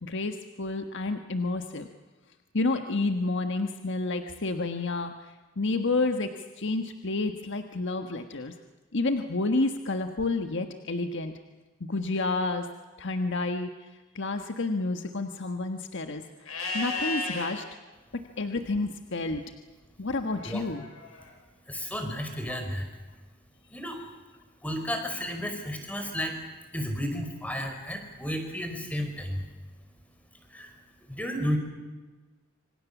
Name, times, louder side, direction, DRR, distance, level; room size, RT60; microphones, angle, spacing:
voice 1, 0.0-1.9 2.5-8.5 8.9-11.3 11.8-12.7 13.0-13.9 14.1-16.2 16.7-17.6 18.1-19.4 20.0-20.9 22.5-22.6, left 3 dB, 60° left, 6 dB, 1.5 m, -30 dB
Livestock farm animals working animals, 16.4-17.5 20.3-21.3, left 3 dB, 85° left, 7.8 m, -34 dB
voice 2, 21.7-22.9 23.7-24.0 24.6-26.4 26.7-29.4 30.5-30.7 31.1-31.6, equal, 5° left, 5 dB, 4.9 m, -32 dB
26.5 x 26.0 x 7.3 m, 1.3 s
head